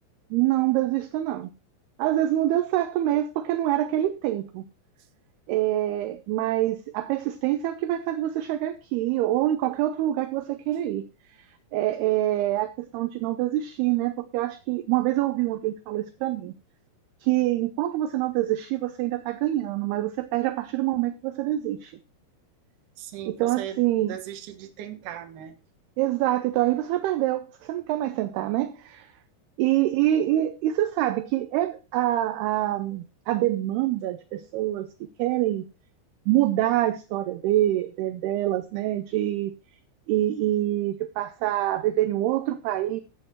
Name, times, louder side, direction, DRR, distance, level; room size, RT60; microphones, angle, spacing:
voice 1, 0.3-1.5 2.0-4.6 5.5-11.0 11.7-16.5 17.2-21.9 23.3-24.1 26.0-29.1 29.6-35.6 36.3-39.5 40.1-43.0, right 14 dB, 80° right, 2.3 m, -25 dB
voice 2, 23.0-25.6, right 10 dB, 65° right, 2.2 m, -38 dB
16.0 x 8.1 x 3.1 m
omnidirectional pair, 5.3 m